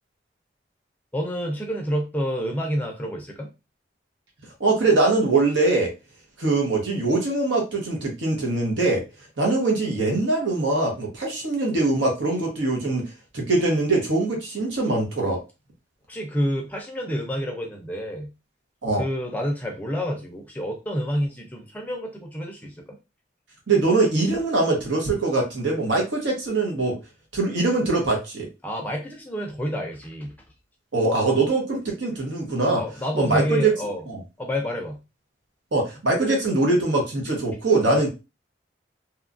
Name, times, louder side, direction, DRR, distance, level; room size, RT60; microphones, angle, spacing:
voice 1, 1.1-3.5 16.1-18.3 19.0-22.8 28.6-30.3 32.7-34.0 34.4-35.0, equal, 10° left, 1 dB, 0.4 m, -28 dB
voice 2, 4.6-5.9 6.4-9.0 9.4-13.0 13.3-15.4 18.8-19.0 23.7-27.0 27.3-28.5 30.9-32.8 33.1-33.7 34.1-34.2 35.7-38.1, right 3 dB, 85° right, -1 dB, 0.9 m, -22 dB
2.9 x 2.3 x 2.4 m, 0.28 s
head